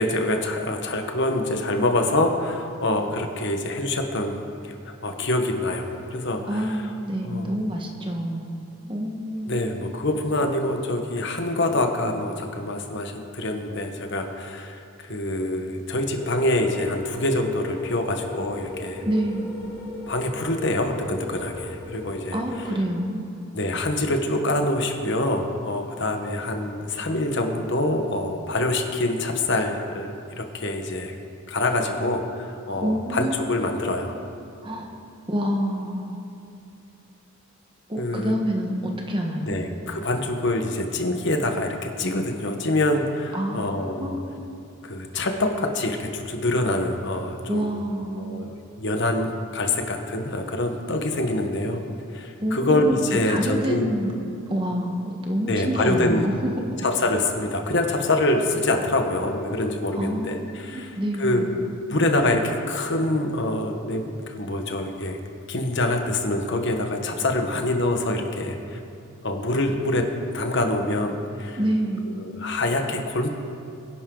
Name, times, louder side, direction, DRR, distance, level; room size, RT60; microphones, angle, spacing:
voice 1, 0.0-6.8 7.2-7.5 9.5-14.8 15.1-19.0 20.1-22.4 23.5-30.1 30.4-31.1 31.5-34.2 38.0-38.3 39.5-44.2 44.8-47.7 48.2-51.8 52.1-53.9 55.5-56.2 56.8-61.4 61.9-65.2 65.5-68.8 69.2-70.1 70.3-71.6 72.2-73.3, left 1 dB, 55° left, 4 dB, 1.3 m, -25 dB
voice 2, 6.5-8.6 8.9-9.6 19.0-19.5 22.3-23.3 32.7-33.8 34.6-34.9 35.3-36.2 37.9-39.6 43.3-44.2 47.5-48.3 52.4-53.0 53.3-54.1 54.5-56.8 59.9-60.4 60.7-61.5 71.5-72.0, equal, 25° right, 1 dB, 1.3 m, -27 dB
sound 1, 16.1-22.7, left 2 dB, 10° left, 3.3 m, -38 dB
22.5 x 11.0 x 3.9 m, 2.7 s
head